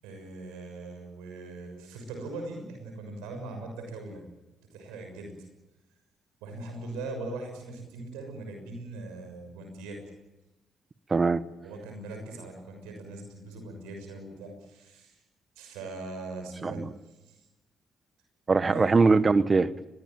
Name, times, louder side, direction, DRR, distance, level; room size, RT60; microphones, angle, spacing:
voice 1, 0.0-4.3 4.7-5.3 6.4-10.0 11.6-15.2 15.6-17.4 18.7-18.9, right 2 dB, 90° right, 4 dB, 6.4 m, -40 dB
voice 2, 11.1-11.4 16.6-16.9 18.5-19.9, right 4 dB, 35° right, 15 dB, 1.3 m, -22 dB
23.0 x 21.0 x 9.1 m, 1.0 s
supercardioid pair, 55°, 0 cm